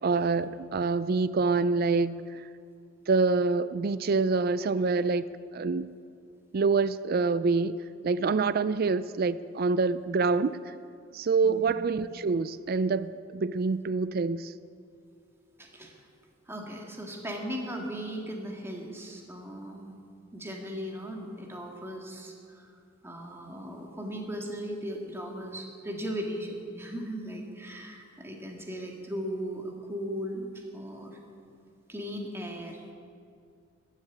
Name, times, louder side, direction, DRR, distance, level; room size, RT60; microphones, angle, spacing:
voice 1, 0.0-2.4 3.1-5.3 5.5-5.9 6.5-7.8 8.0-10.7 11.1-14.5, right 4 dB, 50° right, 15 dB, 0.4 m, -26 dB
voice 2, 15.6-15.9 16.5-20.0 20.3-22.7 23.0-31.2 31.9-32.9, equal, 10° right, 1 dB, 1.8 m, -37 dB
15.0 x 10.5 x 8.5 m, 2.4 s
head